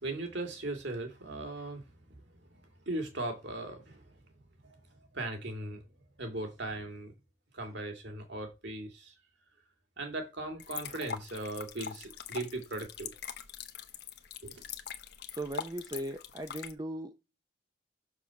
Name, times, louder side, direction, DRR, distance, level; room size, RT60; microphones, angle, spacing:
voice 1, 0.0-4.3 4.6-7.1 7.5-9.2 10.0-13.1 14.4-14.6, right 2 dB, 60° right, 2.4 m, -39 dB
sound 1, 10.6-16.7, left 7 dB, 55° left, 1.0 m, -42 dB
voice 2, 15.3-17.1, right 1 dB, 20° right, 0.6 m, -38 dB
6.8 x 4.9 x 5.8 m
head